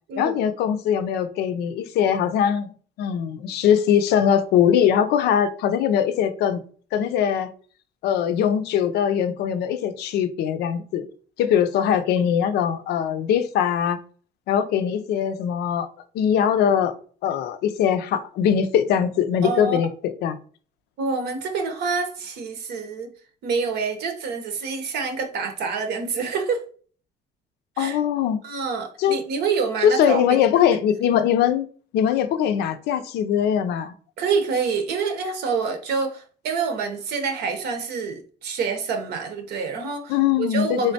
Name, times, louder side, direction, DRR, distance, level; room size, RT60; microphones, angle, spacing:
voice 1, 0.2-2.7 3.0-6.6 6.9-7.5 8.0-11.1 11.4-14.0 14.5-15.9 16.1-16.9 17.2-20.4 27.8-28.4 29.0-29.2 29.8-31.7 31.9-33.9 40.1-40.9, left 9 dB, 75° left, 0.4 m, -21 dB
voice 2, 19.4-19.8 21.0-23.1 23.4-26.6 27.8-28.0 28.4-30.4 34.2-40.9, right 5 dB, 75° right, 0.8 m, -27 dB
3.6 x 3.2 x 2.7 m
cardioid pair, 110°, 17 cm